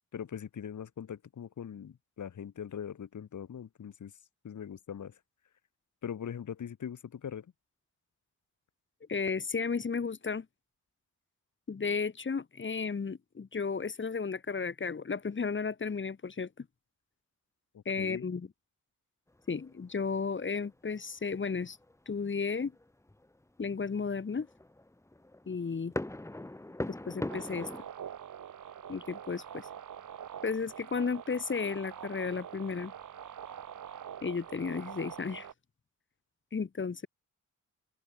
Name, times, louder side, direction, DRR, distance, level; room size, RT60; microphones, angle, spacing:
voice 1, 0.1-4.1 4.4-5.2 6.0-7.5 17.7-18.2, left 8 dB, 70° left, 3.8 m, -41 dB
voice 2, 9.1-10.5 11.7-16.7 17.9-18.5 19.5-21.8 22.1-22.7 23.6-24.5 25.5-25.9 26.9-27.7 28.9-29.7 30.4-32.9 34.2-35.5 36.5-37.1, left 5 dB, 40° left, 2.0 m, -33 dB
sound 1, 19.4-20.3 20.5-20.7 21.3-22.0 22.4-27.8, left 1 dB, 10° left, 1.4 m, -41 dB
sound 2, 27.3-35.5, right 9 dB, 75° right, 3.0 m, -45 dB
cardioid pair, 95°, 31 cm